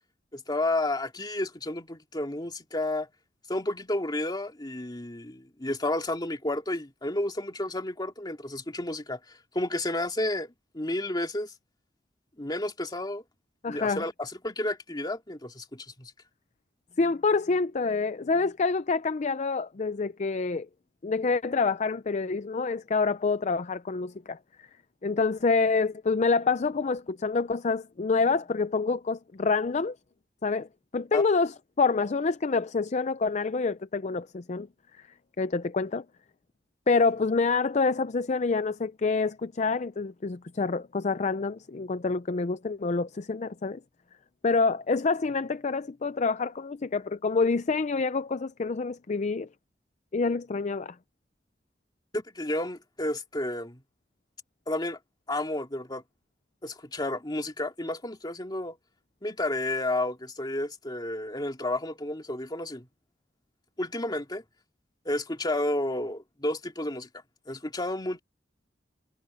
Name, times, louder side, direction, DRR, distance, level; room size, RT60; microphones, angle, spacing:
voice 1, 0.3-3.1 3.5-11.5 12.4-13.2 13.7-16.1 31.1-31.2 52.1-53.8 54.7-55.0 55.3-56.0 56.6-58.8 59.2-62.9 63.8-64.4 65.0-67.1 67.5-68.2, left 1 dB, 25° left, 2.4 m, -31 dB
voice 2, 13.6-14.0 17.0-20.7 21.0-24.4 25.0-30.0 30.4-30.7 30.9-34.7 35.4-36.0 36.9-43.8 44.4-49.5 50.1-51.0, left 4 dB, 40° left, 0.5 m, -27 dB
head